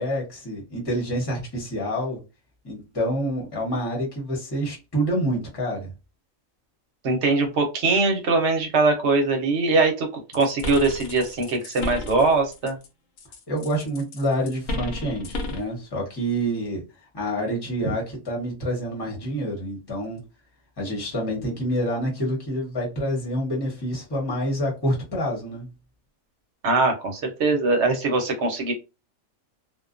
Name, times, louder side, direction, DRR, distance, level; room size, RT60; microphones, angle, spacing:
voice 1, 0.0-2.2 2.6-5.9 13.5-16.8 17.1-20.2 20.8-25.7, equal, 20° left, 0.9 m, -27 dB
voice 2, 7.0-12.8 26.6-28.7, right 3 dB, 60° right, 1.0 m, -22 dB
sound 1, 10.3-12.9 13.2-15.7, left 1 dB, 80° left, 1.1 m, -33 dB
2.5 x 2.2 x 2.5 m
omnidirectional pair, 1.4 m